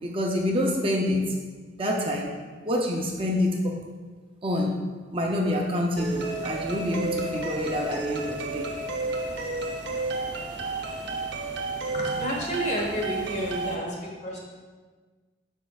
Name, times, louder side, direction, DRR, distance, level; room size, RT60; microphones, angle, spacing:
voice 1, 0.0-1.3 1.8-2.3 2.6-3.8 4.4-4.7 5.1-8.7, left 1 dB, 30° right, -1 dB, 0.5 m, -27 dB
sound 1, 6.0-13.8, right 2 dB, 60° right, 0.8 m, -31 dB
voice 2, 11.9-14.4, equal, 35° left, -2 dB, 1.3 m, -30 dB
11.5 x 4.4 x 2.4 m, 1.4 s
head